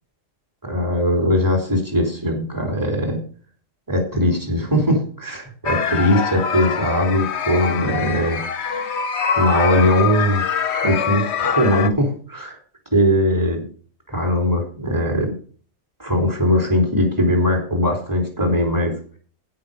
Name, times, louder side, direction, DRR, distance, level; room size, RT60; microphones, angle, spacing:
voice 1, 0.6-3.2 3.9-8.4 9.3-10.4 10.8-12.6 12.9-13.6 14.1-15.3 16.0-19.0, left 1 dB, 15° right, 1 dB, 3.4 m, -20 dB
sound 1, 5.6-11.9, left 7 dB, 55° left, 1.1 m, -24 dB
15.5 x 5.6 x 5.1 m, 0.42 s
omnidirectional pair, 1.4 m